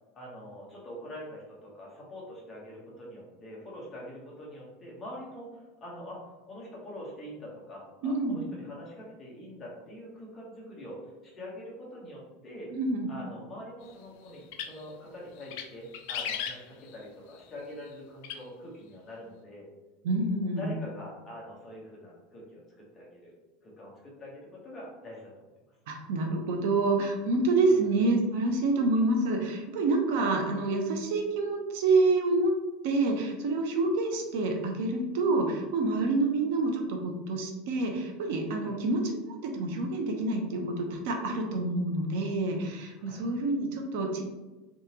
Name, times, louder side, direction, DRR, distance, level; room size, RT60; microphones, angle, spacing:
voice 1, 0.1-12.7 13.1-19.7 20.6-23.3 23.6-25.3 27.7-27.8 38.6-38.8 43.0-43.2, left 1 dB, 15° left, -4 dB, 1.0 m, -44 dB
voice 2, 8.0-8.4 12.7-13.1 20.0-20.8 25.9-32.5 32.8-39.1 39.4-44.2, right 2 dB, 65° right, 3 dB, 0.6 m, -27 dB
sound 1, 14.4-14.9 15.4-15.7 15.9-17.0 18.2-18.4, left 8 dB, 55° left, 0.4 m, -35 dB
3.8 x 3.6 x 2.9 m, 1.1 s
supercardioid pair, 180°, 0 cm